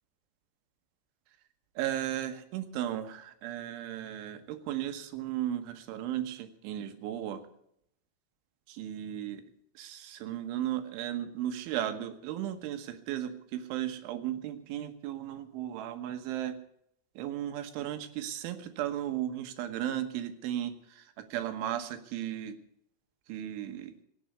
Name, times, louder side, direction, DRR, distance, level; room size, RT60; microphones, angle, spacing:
voice 1, 1.8-7.4 8.7-9.4 9.8-16.6 17.2-22.6 23.3-23.9, right 11 dB, 85° right, 8 dB, 3.7 m, -35 dB
17.0 x 9.5 x 8.3 m, 0.72 s
omnidirectional pair, 5.4 m